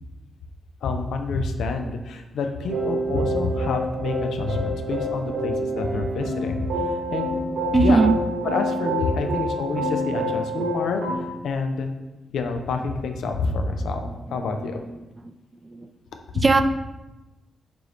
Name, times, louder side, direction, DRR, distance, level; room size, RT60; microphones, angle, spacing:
voice 1, 0.8-7.3 7.7-8.0 8.4-11.9 12.3-14.8, left 4 dB, 80° left, 5 dB, 0.4 m, -28 dB
sound 1, 2.6-11.2, right 1 dB, 80° right, 1.1 m, -27 dB
voice 2, 7.7-8.2 14.0-15.3 15.6-15.9 16.4-16.6, right 3 dB, 35° right, 9 dB, 0.3 m, -22 dB
4.6 x 2.5 x 3.0 m, 1.0 s
supercardioid pair, 45°, 0 cm